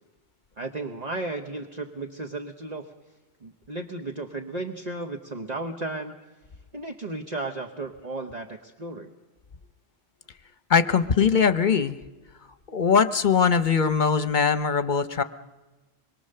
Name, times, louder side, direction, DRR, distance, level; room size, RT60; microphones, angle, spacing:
voice 1, 0.6-2.9 3.4-6.2 6.7-9.1, right 2 dB, 40° right, 4 dB, 1.2 m, -34 dB
voice 2, 10.7-12.0 12.7-15.2, left 6 dB, 50° left, 11 dB, 1.0 m, -21 dB
25.5 x 22.5 x 6.7 m, 1.2 s
omnidirectional pair, 1.0 m